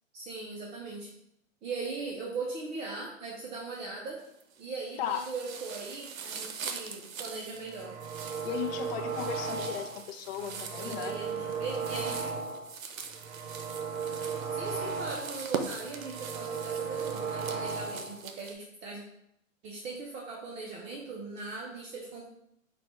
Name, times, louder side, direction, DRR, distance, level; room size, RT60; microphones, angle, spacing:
voice 1, 0.1-1.1 1.6-4.2 4.6-8.0 10.4-12.4 14.5-19.0 19.6-22.3, right 4 dB, 15° right, -3 dB, 0.4 m, -39 dB
sound 1, 4.2-4.7 5.1-18.5, right 6 dB, 85° right, 0.6 m, -42 dB
sound 2, 7.6-10.0 10.4-12.7 13.1-15.4 15.8-18.2, right 5 dB, 50° right, 0.9 m, -36 dB
voice 2, 8.4-11.2, left 10 dB, 50° left, 7 dB, 0.5 m, -36 dB
4.1 x 2.3 x 4.3 m, 0.76 s
hypercardioid pair, 110°, 40 cm